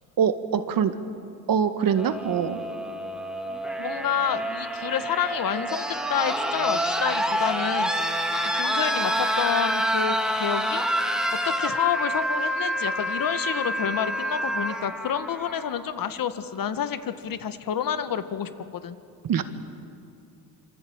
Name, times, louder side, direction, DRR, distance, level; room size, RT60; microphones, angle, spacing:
voice 1, 0.2-1.0 1.5-2.6 19.2-19.4, right 7 dB, 60° right, 9 dB, 1.9 m, -23 dB
sound 1, 1.9-15.9 17.1-17.2, equal, ahead, 2.3 m, -28 dB
voice 2, 3.8-7.9 8.4-10.8 11.4-19.0, left 8 dB, 60° left, 10 dB, 1.8 m, -29 dB
26.0 x 25.5 x 9.0 m, 2.5 s
cardioid pair, 95°, 39 cm